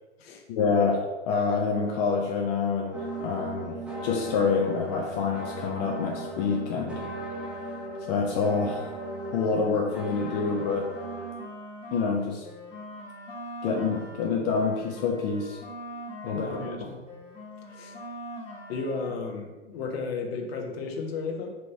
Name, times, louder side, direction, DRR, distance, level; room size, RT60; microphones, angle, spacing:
voice 1, 0.5-3.8 4.0-7.0 8.1-8.8 9.3-10.9 11.9-12.4 13.6-15.6 16.2-16.6, left 5 dB, 35° left, 0 dB, 0.5 m, -27 dB
sound 1, 2.9-11.3, right 1 dB, 5° right, 0.7 m, -37 dB
sound 2, 9.9-12.1 12.4-16.8 17.1-19.1, equal, 15° left, 1.0 m, -42 dB
voice 2, 16.2-17.1 17.7-18.0 18.7-21.6, left 4 dB, 55° left, 3 dB, 0.9 m, -34 dB
4.6 x 3.0 x 2.7 m, 1.2 s
figure-of-eight pair, 110°, 37 cm